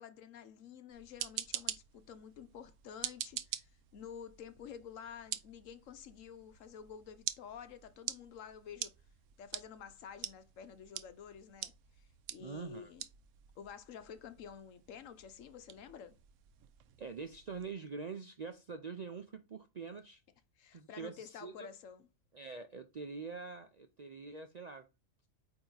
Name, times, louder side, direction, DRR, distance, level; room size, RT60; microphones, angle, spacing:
voice 1, 0.0-9.0 9.4-12.1 12.3-13.0 13.6-16.2 20.6-22.1, left 8 dB, 75° left, 1.1 m, -50 dB
sound 1, 0.9-17.7, right 11 dB, 75° right, 0.9 m, -46 dB
voice 2, 12.4-12.9 17.0-20.2 20.7-21.7 22.3-24.9, right 5 dB, 55° right, 0.4 m, -45 dB
8.6 x 2.9 x 3.9 m
omnidirectional pair, 1.4 m